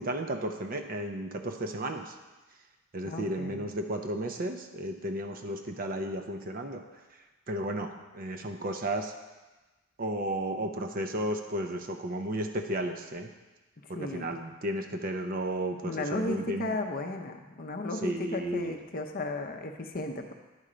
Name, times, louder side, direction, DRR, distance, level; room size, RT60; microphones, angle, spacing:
voice 1, 0.0-2.1 2.9-6.8 7.5-9.1 10.0-13.3 13.9-16.8 18.0-18.8, right 1 dB, 40° right, 6 dB, 0.5 m, -33 dB
voice 2, 3.0-3.6 13.9-14.4 15.8-20.3, left 2 dB, 40° left, 4 dB, 0.6 m, -34 dB
9.7 x 4.3 x 5.0 m, 1.2 s
head